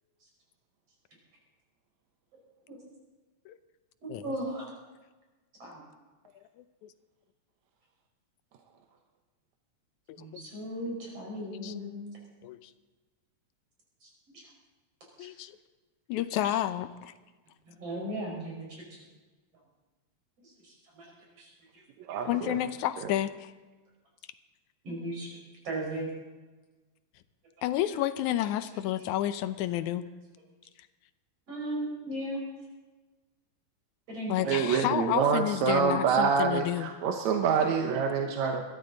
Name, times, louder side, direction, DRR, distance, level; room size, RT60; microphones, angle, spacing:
voice 1, 4.2-4.7 5.6-5.8 10.2-12.1 14.3-14.4 15.2-15.3 17.7-19.0 20.6-21.1 21.4-21.8 24.8-25.4 25.6-26.1 31.5-32.4 34.1-34.8, right 1 dB, 55° right, -2 dB, 5.8 m, -37 dB
voice 2, 10.1-10.4 11.6-11.7 12.4-12.7 15.2-15.5 16.1-17.1 22.3-23.5 27.6-30.1 34.3-36.9, left 13 dB, 85° left, 12 dB, 2.1 m, -30 dB
voice 3, 22.1-22.6 23.0-23.1 34.5-38.6, right 6 dB, 75° right, 3 dB, 2.2 m, -26 dB
21.5 x 14.0 x 3.9 m, 1.2 s
omnidirectional pair, 3.3 m